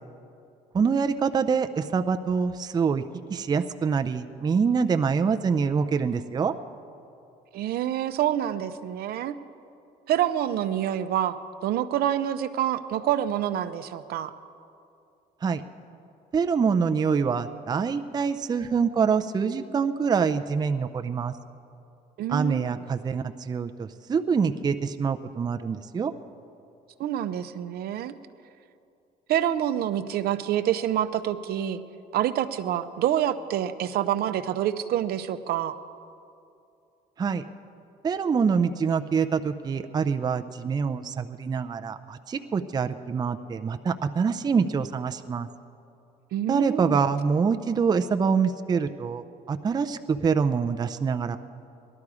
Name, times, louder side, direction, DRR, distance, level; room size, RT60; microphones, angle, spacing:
voice 1, 0.7-3.0 3.3-6.5 15.4-15.6 16.3-21.3 22.3-26.1 37.2-37.4 38.0-45.5 46.5-51.4, right 5 dB, 25° right, 8 dB, 0.5 m, -25 dB
voice 2, 7.5-9.4 10.1-11.4 11.6-14.3 22.2-22.8 27.0-28.1 29.3-31.8 32.1-35.8 46.3-47.0, right 11 dB, 65° right, 10 dB, 0.6 m, -27 dB
17.5 x 12.0 x 4.9 m, 2.6 s
cardioid pair, 110°, 17 cm